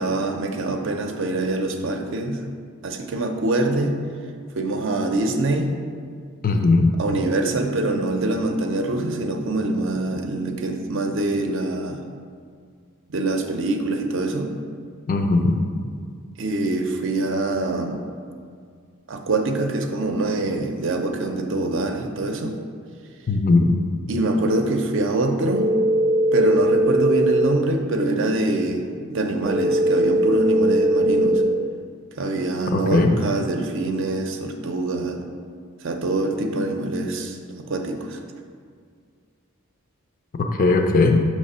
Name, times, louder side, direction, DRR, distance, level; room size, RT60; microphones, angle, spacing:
voice 1, 0.0-2.4 2.8-3.9 4.6-5.7 7.0-12.0 13.1-14.5 16.4-18.0 19.1-22.6 24.1-25.7 26.3-31.4 32.2-35.2 35.8-37.4 37.6-38.2, right 2 dB, 60° right, 4 dB, 0.6 m, -24 dB
voice 2, 6.4-6.9 15.1-15.6 23.3-23.8 32.7-33.1 40.4-41.3, left 3 dB, 40° left, 4 dB, 0.4 m, -18 dB
sound 1, 25.5-27.5 29.5-31.5, right 1 dB, 15° right, 0.6 m, -19 dB
6.5 x 3.1 x 5.4 m, 2.1 s
head